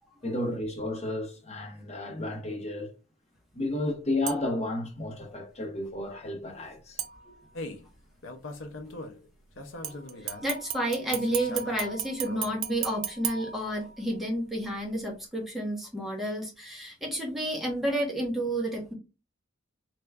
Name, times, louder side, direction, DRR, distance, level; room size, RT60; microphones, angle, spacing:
voice 1, 0.2-2.9 3.5-7.0, left 1 dB, 30° left, 0.8 m, -32 dB
sound 1, 4.3-4.7 7.0-7.7 9.8-14.2 14.7-14.8, right 10 dB, 90° right, 0.4 m, -37 dB
sound 2, 7.5-7.9 8.2-9.2 9.6-10.5 11.1-12.6, left 2 dB, 65° left, 0.5 m, -41 dB
voice 2, 9.8-18.9, right 1 dB, ahead, 0.8 m, -31 dB
3.3 x 2.9 x 2.3 m
head